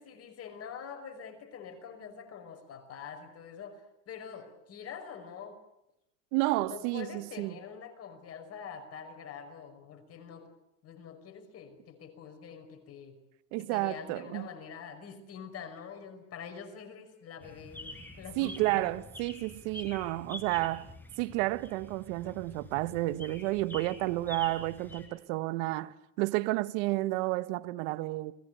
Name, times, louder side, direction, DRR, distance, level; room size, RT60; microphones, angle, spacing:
voice 1, 0.0-5.6 6.5-10.5 10.8-13.2 13.6-18.9, left 7 dB, 40° left, 5.6 m, -45 dB
voice 2, 6.3-7.6 13.5-14.5 18.4-28.3, right 19 dB, 65° right, 1.4 m, -31 dB
sound 1, 17.4-25.1, left 1 dB, 5° left, 6.9 m, -47 dB
29.5 x 21.5 x 8.3 m
supercardioid pair, 120°, 39 cm